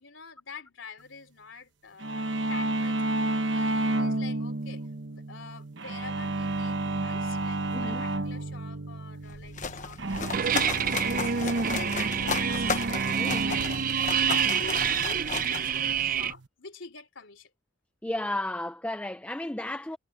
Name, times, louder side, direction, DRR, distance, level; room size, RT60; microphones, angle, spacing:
voice 1, 0.0-14.0 14.3-17.5, left 5 dB, 75° left, 3.2 m, -47 dB
sound 1, 2.0-16.5, right 2 dB, 65° right, 1.1 m, -32 dB
voice 2, 7.7-8.0 13.2-13.5 18.0-20.0, left 1 dB, 5° left, 0.5 m, -33 dB
sound 2, 9.2-16.2, left 5 dB, 40° left, 1.1 m, -35 dB
sound 3, 10.3-16.3, right 7 dB, 45° right, 0.6 m, -27 dB
head